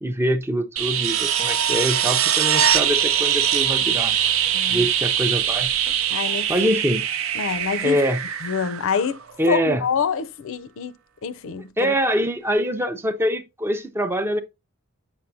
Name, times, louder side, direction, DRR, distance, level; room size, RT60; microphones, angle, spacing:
voice 1, 0.0-4.2 4.7-5.7 6.5-7.0 7.8-8.2 9.4-9.8 11.8-14.4, equal, 10° right, 0.4 m, -24 dB
sound 1, 0.8-9.4 11.8-11.9, right 9 dB, 70° right, 0.6 m, -22 dB
voice 2, 4.5-4.9 6.1-6.5 7.3-8.0 8.4-9.2 9.5-10.9 11.2-11.9, left 6 dB, 65° left, 0.5 m, -26 dB
6.9 x 6.0 x 2.6 m
head